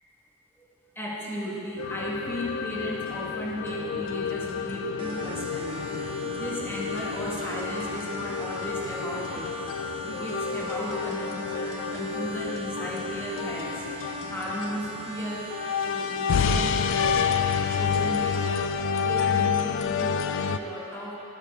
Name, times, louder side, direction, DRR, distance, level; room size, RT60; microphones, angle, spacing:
voice 1, 0.9-5.9 6.3-9.5 10.0-13.8 14.3-15.5 15.8-21.2, equal, 10° left, -5 dB, 1.3 m, -35 dB
sound 1, 1.8-20.6, left 6 dB, 60° left, 0.3 m, -29 dB
sound 2, 5.0-18.5, right 2 dB, 25° right, 0.4 m, -40 dB
sound 3, 7.2-7.5 7.9-8.1 8.6-8.9 9.4-9.8 10.1-10.3 10.8-11.2 11.5-11.7 12.1-12.4 12.8-13.1 13.5-13.7 14.2-14.5 14.9-15.1 15.6-15.9 16.4-16.5, right 2 dB, 55° right, 1.2 m, -50 dB
11.5 x 8.4 x 3.4 m, 3.0 s
head